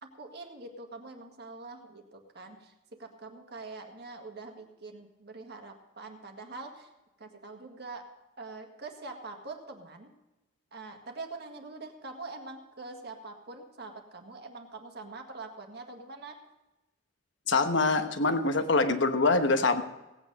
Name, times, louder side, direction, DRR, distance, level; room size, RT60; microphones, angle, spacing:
voice 1, 0.0-6.9 7.2-8.1 8.4-10.1 10.7-16.4, right 3 dB, 55° right, 3 dB, 1.8 m, -44 dB
voice 2, 17.5-19.8, left 3 dB, 70° left, 8 dB, 1.1 m, -24 dB
17.5 x 9.1 x 5.3 m, 1.0 s
head